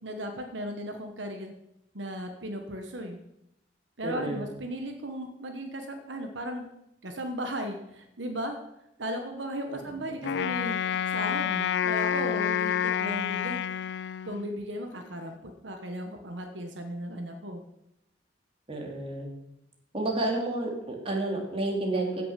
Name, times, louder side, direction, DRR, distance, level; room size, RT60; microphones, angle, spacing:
voice 1, 0.0-1.5 1.9-3.2 4.0-6.7 7.0-8.6 9.0-10.8 11.1-13.6 14.2-17.6, equal, 80° right, 5 dB, 1.3 m, -36 dB
voice 2, 4.0-4.4 9.7-9.8 10.2-10.3 18.7-19.3 19.9-22.2, right 2 dB, 30° right, 0 dB, 2.7 m, -30 dB
Wind instrument woodwind instrument, 10.2-14.6, left 8 dB, 65° left, 0.3 m, -29 dB
15.5 x 6.8 x 5.8 m, 0.85 s
head